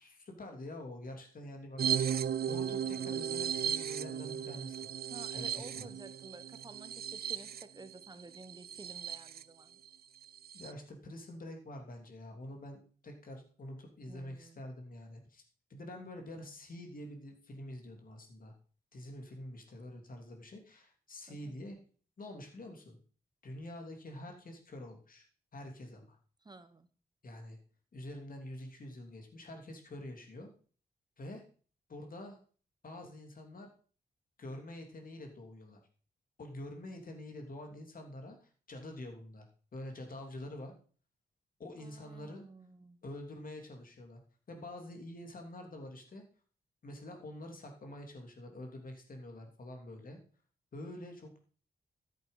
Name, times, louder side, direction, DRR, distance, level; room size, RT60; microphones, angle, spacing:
voice 1, 0.0-2.1 2.5-4.8 5.3-5.9 10.5-15.4 15.7-18.5 18.9-21.8 22.2-23.0 23.4-25.3 25.5-26.2 27.2-27.6 27.9-30.5 31.2-31.4 31.9-32.4 32.8-33.7 34.4-35.8 36.4-39.4 39.7-40.7 41.6-42.5 43.0-44.2 44.5-46.2 46.8-50.2 50.7-51.4, left 1 dB, 55° left, 3 dB, 3.3 m, -47 dB
sound 1, 1.8-9.4 9.9-10.0 10.2-10.7, right 8 dB, 70° right, 0.5 m, -36 dB
voice 2, 5.1-9.8 14.1-14.6 21.3-21.6 26.4-26.9 41.8-43.0, right 3 dB, 25° right, 11 dB, 1.1 m, -52 dB
13.5 x 7.9 x 5.6 m, 0.42 s
wide cardioid pair, 100°, 17 cm